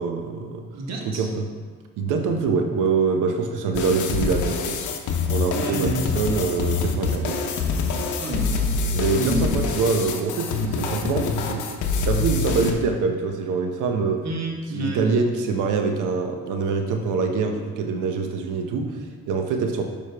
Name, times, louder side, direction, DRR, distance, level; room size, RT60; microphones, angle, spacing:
voice 1, 0.0-0.7 1.1-1.5 2.0-4.8 5.3-7.4 8.9-14.2 14.7-19.8, right 4 dB, 90° right, 4 dB, 0.8 m, -25 dB
voice 2, 0.7-1.3 5.5-6.1 8.2-8.8 9.1-9.5 14.2-15.1, right 2 dB, 60° right, 0 dB, 1.3 m, -29 dB
sound 1, 3.7-12.7, left 4 dB, 80° left, 0.7 m, -25 dB
6.8 x 5.0 x 3.4 m, 1.5 s
cardioid pair, 90°, 30 cm